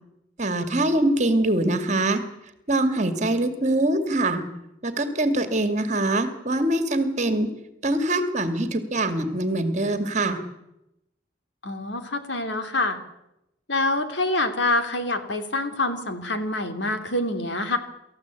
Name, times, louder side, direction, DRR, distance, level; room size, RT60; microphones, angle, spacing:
voice 1, 0.4-2.2 2.7-4.4 4.8-7.5 7.8-10.4, right 1 dB, 40° right, 9 dB, 2.4 m, -23 dB
voice 2, 11.6-13.0 13.7-17.8, left 2 dB, 70° left, 7 dB, 3.1 m, -26 dB
28.0 x 14.5 x 8.5 m, 0.88 s
head